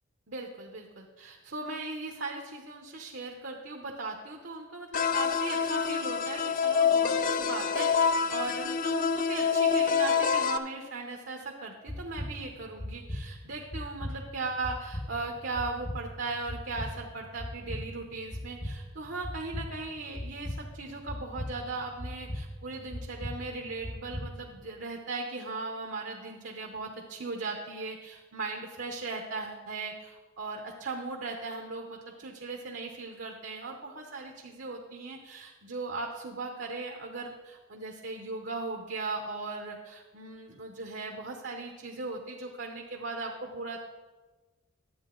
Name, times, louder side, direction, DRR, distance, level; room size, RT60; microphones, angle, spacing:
voice 1, 0.3-43.8, right 3 dB, 55° right, 2 dB, 0.8 m, -38 dB
sound 1, 4.9-10.6, left 6 dB, 40° left, 0.3 m, -26 dB
sound 2, 11.9-24.6, equal, 20° left, 1.0 m, -40 dB
11.0 x 8.2 x 3.8 m, 1.2 s
head